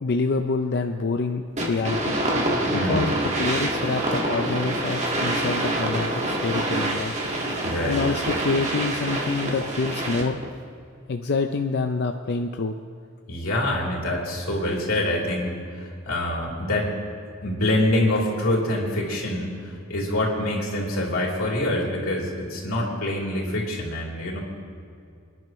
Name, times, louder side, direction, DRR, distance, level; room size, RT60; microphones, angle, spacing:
voice 1, 0.0-2.1 2.7-3.1 3.4-7.1 7.9-10.4 11.1-12.7, left 3 dB, 55° left, 6 dB, 0.5 m, -26 dB
sound 1, 1.6-10.5, right 1 dB, 35° right, 1.8 m, -26 dB
voice 2, 2.7-3.1 7.6-8.2 13.3-17.0 17.4-24.4, left 1 dB, 90° left, -3 dB, 3.3 m, -26 dB
28.5 x 11.0 x 3.1 m, 2.4 s
head